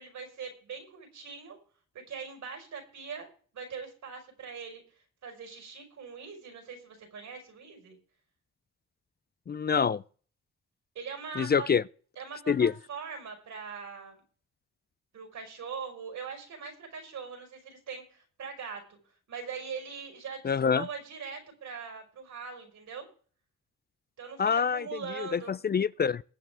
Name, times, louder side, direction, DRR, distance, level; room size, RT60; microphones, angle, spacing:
voice 1, 0.0-1.6 2.1-4.8 5.2-8.0 10.9-11.7 12.1-14.2 15.1-19.0 19.3-23.1 24.2-25.5, right 6 dB, 75° right, 5.1 m, -42 dB
voice 2, 9.5-10.0 11.4-11.8 12.5-12.7 20.4-20.9 24.4-26.2, left 6 dB, 35° left, 0.5 m, -26 dB
21.5 x 8.1 x 3.6 m
supercardioid pair, 55°, 29 cm